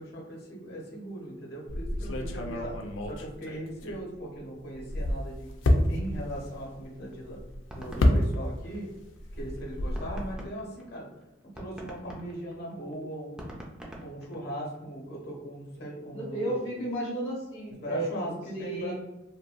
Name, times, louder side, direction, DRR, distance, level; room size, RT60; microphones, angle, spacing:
voice 1, 0.0-2.7 3.1-5.5 5.9-7.4 7.7-8.9 9.3-11.1 11.6-13.6 14.0-16.6 17.8-18.9, right 1 dB, 60° left, -2 dB, 0.9 m, -39 dB
sound 1, 1.7-4.4 4.7-8.8 9.0-10.3, left 1 dB, 75° left, 0.4 m, -29 dB
sound 2, 7.1-9.2 9.6-9.7 9.9-14.9, right 1 dB, 5° right, 0.4 m, -45 dB
voice 2, 16.1-18.9, right 1 dB, 30° left, -8 dB, 0.8 m, -33 dB
2.8 x 2.7 x 2.2 m, 0.98 s
head